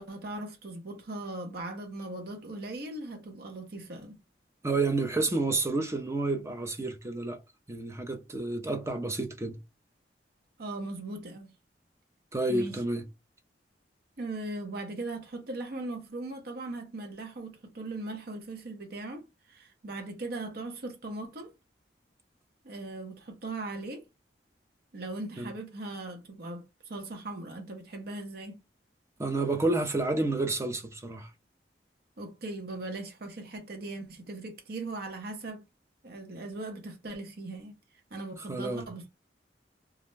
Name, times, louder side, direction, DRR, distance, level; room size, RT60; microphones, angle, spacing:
voice 1, 0.0-4.2 10.6-11.5 12.5-12.8 14.2-21.5 22.6-24.0 24.9-28.6 32.2-35.6 36.0-37.8 38.1-39.1, right 2 dB, 60° right, 0.7 m, -39 dB
voice 2, 4.6-7.4 7.7-9.6 12.3-13.1 25.4-25.5 29.2-31.3 38.5-38.8, right 2 dB, 15° right, 0.4 m, -30 dB
2.4 x 2.1 x 3.0 m
head